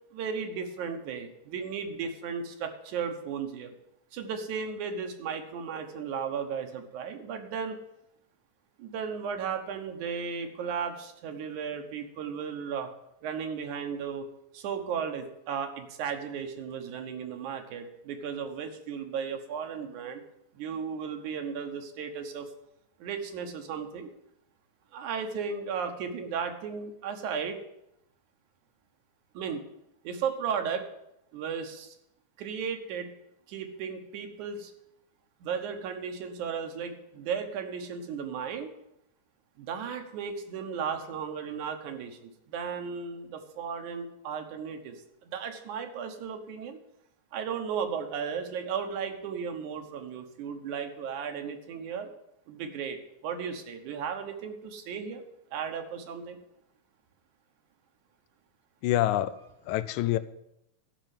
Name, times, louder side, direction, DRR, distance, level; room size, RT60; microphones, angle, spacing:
voice 1, 0.1-3.7 4.1-7.8 8.8-12.9 13.2-14.3 14.5-20.2 20.5-22.5 23.0-24.1 24.9-27.6 29.3-29.6 30.0-30.9 31.3-32.0 32.4-33.1 33.5-34.7 35.4-38.7 39.6-46.8 47.3-52.1 52.5-55.2 55.5-56.4, right 6 dB, 80° right, 6 dB, 2.6 m, -35 dB
voice 2, 58.8-59.4 59.7-60.2, left 14 dB, 85° left, 12 dB, 2.0 m, -26 dB
12.0 x 5.6 x 9.1 m, 0.82 s
omnidirectional pair, 3.4 m